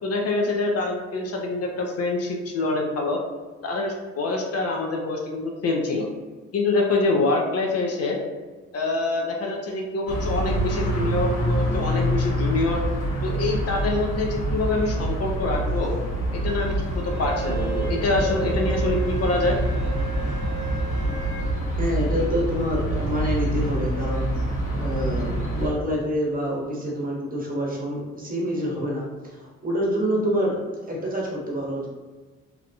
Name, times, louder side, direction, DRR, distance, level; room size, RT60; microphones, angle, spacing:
voice 1, 0.0-3.2 3.6-6.1 6.5-8.2 8.7-12.8 13.2-15.9 16.3-19.6, left 2 dB, 55° left, 1 dB, 0.5 m, -25 dB
sound 1, 10.1-25.7, right 1 dB, 85° left, 1.1 m, -26 dB
Wind instrument woodwind instrument, 17.1-21.5, right 7 dB, 10° left, 0.7 m, -35 dB
voice 2, 21.8-24.3 24.8-30.6 30.9-31.9, equal, 30° right, -4 dB, 0.9 m, -27 dB
2.8 x 2.1 x 2.6 m, 1.3 s
cardioid pair, 90°, 30 cm